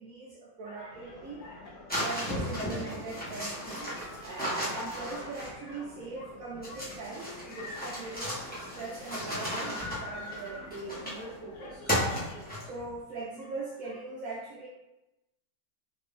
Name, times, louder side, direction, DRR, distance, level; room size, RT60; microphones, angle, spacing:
voice 1, 0.0-1.4 2.0-3.9 4.2-11.8 12.6-14.7, right 3 dB, 70° right, -3 dB, 0.8 m, -41 dB
sound 1, 0.6-12.8 13.1-14.0, left 2 dB, 90° left, 1.4 m, -49 dB
sound 2, 0.9-12.5, left 3 dB, 75° left, 0.7 m, -51 dB
sound 3, 1.9-5.8 6.6-11.3 11.9-12.9, equal, 10° left, 0.5 m, -35 dB
3.2 x 2.6 x 3.4 m, 0.98 s
omnidirectional pair, 2.0 m